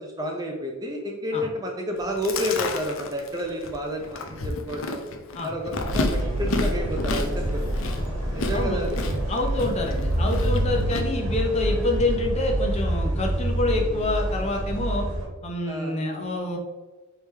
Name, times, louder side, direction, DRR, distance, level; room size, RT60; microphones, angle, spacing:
voice 1, 0.0-5.0 5.4-7.6 8.3-9.0 15.7-16.0, equal, 15° right, 1 dB, 0.4 m, -30 dB
Chewing mastication, 2.0-11.0, left 3 dB, 65° left, 0.5 m, -32 dB
sound 1, 5.8-15.3, right 1 dB, 85° right, 1.3 m, -27 dB
sound 2, 6.8-10.9 11.2-12.0, right 1 dB, 85° left, 1.4 m, -36 dB
voice 2, 8.5-8.9 9.3-15.1 15.4-16.6, left 2 dB, 30° left, 1 dB, 0.7 m, -27 dB
4.8 x 3.3 x 3.2 m, 1.2 s
head